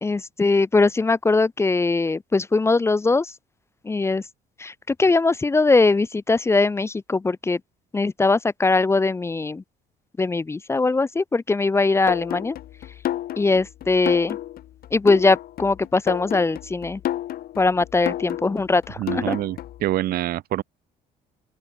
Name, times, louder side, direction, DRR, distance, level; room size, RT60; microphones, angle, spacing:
voice 1, 0.0-3.3 3.8-4.2 4.6-7.6 7.9-9.6 10.2-12.6 13.4-14.4 14.9-17.0 17.6-19.4, left 3 dB, 15° left, 0.5 m, -21 dB
sound 1, 12.1-19.9, left 13 dB, 65° left, 1.8 m, -31 dB
voice 2, 19.0-20.6, right 14 dB, 65° right, 0.8 m, -26 dB
open air
cardioid pair, 110°, 17 cm